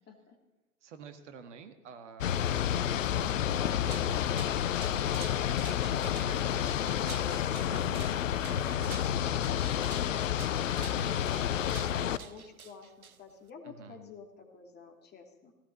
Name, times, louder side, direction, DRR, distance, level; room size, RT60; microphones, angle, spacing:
voice 1, 0.1-0.4 5.8-6.3 12.1-15.5, left 5 dB, 25° left, 3 dB, 2.9 m, -51 dB
voice 2, 0.8-8.0 8.4-12.3 13.6-14.0, right 6 dB, 55° right, 8 dB, 1.9 m, -51 dB
sound 1, 2.2-12.2, left 10 dB, 65° left, 0.8 m, -30 dB
sound 2, 3.7-13.5, right 7 dB, 85° right, 0.8 m, -50 dB
18.5 x 17.0 x 4.1 m, 1.1 s
figure-of-eight pair, 95°, 42 cm